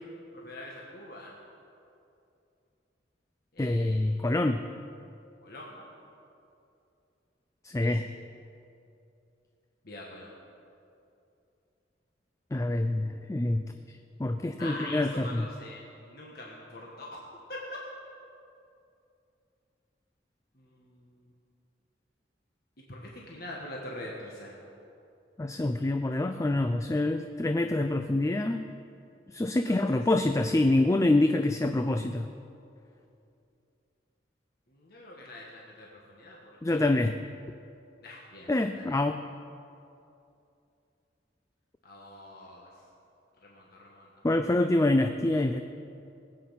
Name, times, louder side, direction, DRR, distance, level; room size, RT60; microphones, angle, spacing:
voice 1, 0.3-1.3 3.5-4.3 5.4-5.9 7.8-8.0 9.8-10.3 14.6-17.2 17.5-17.6 20.5-21.3 22.9-24.5 29.6-30.0 34.7-36.9 38.0-38.9 41.8-42.7 43.4-44.1, left 1 dB, 55° left, -3 dB, 1.6 m, -44 dB
voice 2, 3.6-4.6 7.6-8.1 12.5-13.7 14.2-15.5 25.4-28.6 29.3-32.3 36.6-37.2 38.5-39.2 44.2-45.6, left 2 dB, 15° left, 7 dB, 0.3 m, -26 dB
19.5 x 8.5 x 5.8 m, 2.7 s
head